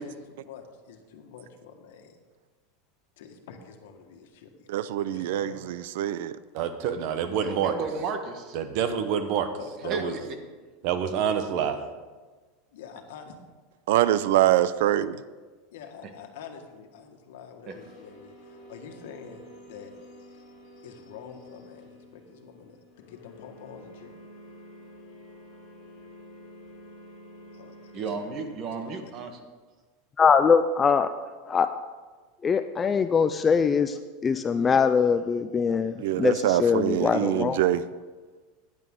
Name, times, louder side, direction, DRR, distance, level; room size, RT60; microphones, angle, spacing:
voice 1, 0.0-2.2 3.2-4.7 5.0-5.6 9.6-10.2 11.2-11.9 12.7-13.3 15.7-19.9 20.8-24.1 27.5-28.1 28.8-29.1, left 7 dB, 80° left, 1.6 m, -46 dB
voice 2, 4.7-6.3 13.9-15.2 36.0-37.8, right 13 dB, 75° right, 0.5 m, -24 dB
voice 3, 6.5-7.7 8.5-9.5 9.8-10.1 10.8-11.8, right 8 dB, 50° right, 1.1 m, -27 dB
voice 4, 7.4-8.6 9.9-10.0 17.7-17.8 27.9-29.3, right 4 dB, 35° right, 1.4 m, -33 dB
sound 1, 17.7-28.6, left 1 dB, 45° left, 4.1 m, -49 dB
voice 5, 30.2-31.1 31.5-31.7 32.4-37.6, left 6 dB, 15° left, 0.3 m, -22 dB
15.0 x 10.5 x 3.8 m
supercardioid pair, 160°, 0 cm